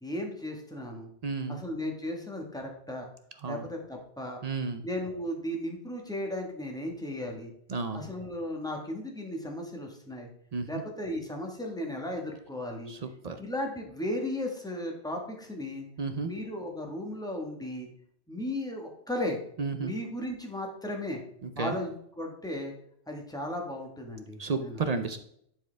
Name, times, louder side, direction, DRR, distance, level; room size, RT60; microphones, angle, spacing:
voice 1, 0.0-1.1 1.5-3.1 3.5-4.4 4.8-7.5 7.9-10.3 10.7-12.9 13.4-15.9 16.2-17.9 18.3-19.4 19.8-21.2 21.6-22.7 23.1-24.8, left 1 dB, 5° left, 1 dB, 1.4 m, -35 dB
voice 2, 1.2-1.6 3.4-3.7 4.4-4.9 7.7-8.0 10.5-10.8 12.9-13.4 16.0-16.3 19.6-19.9 21.4-21.8 24.4-25.2, right 4 dB, 45° right, 7 dB, 0.6 m, -32 dB
11.0 x 4.6 x 3.3 m, 0.69 s
omnidirectional pair, 1.1 m